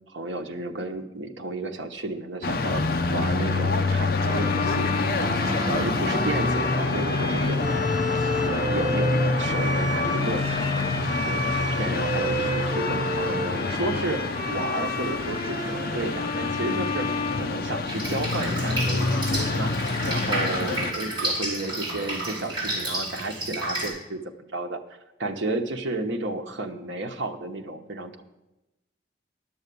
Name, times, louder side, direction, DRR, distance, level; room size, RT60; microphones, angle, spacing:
voice 1, 0.1-4.9 5.2-7.6 8.4-10.9 11.3-14.2 14.5-17.1 17.3-19.1 19.4-19.7 20.1-24.8 25.2-28.2, right 2 dB, 80° right, 4 dB, 1.0 m, -32 dB
sound 1, 2.4-20.9, left 3 dB, 50° left, 0.5 m, -26 dB
Bowed string instrument, 4.1-18.2, left 1 dB, 20° left, 2.4 m, -31 dB
Drip, 17.9-23.9, right 1 dB, 25° right, 3.6 m, -31 dB
11.0 x 7.1 x 6.8 m, 1.0 s
head